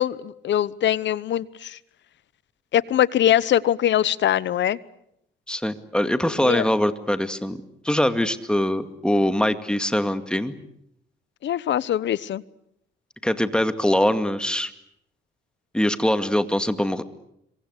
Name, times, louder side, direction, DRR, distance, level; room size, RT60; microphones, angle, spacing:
voice 1, 0.0-1.8 2.7-4.8 6.4-6.7 11.4-12.4, left 11 dB, 65° left, 19 dB, 1.0 m, -22 dB
voice 2, 5.5-7.6 7.8-10.6 13.2-14.7 15.7-17.0, left 1 dB, 5° left, 10 dB, 2.1 m, -23 dB
26.5 x 23.5 x 8.2 m, 0.77 s
cardioid pair, 90°, 20 cm